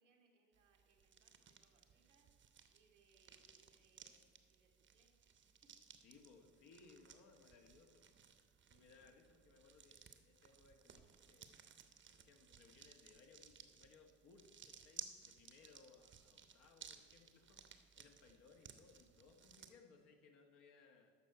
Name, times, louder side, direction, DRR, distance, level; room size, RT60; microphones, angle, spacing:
voice 1, 0.0-5.2 5.6-5.8, right 3 dB, 85° right, 2 dB, 1.2 m, -76 dB
sound 1, 0.5-19.7, right 7 dB, 30° right, 0.8 m, -60 dB
voice 2, 6.0-8.1 8.7-11.6 12.1-17.7 18.0-21.1, left 4 dB, 60° left, 3 dB, 1.4 m, -66 dB
13.5 x 5.6 x 4.6 m, 2.1 s
figure-of-eight pair, 60°, 36 cm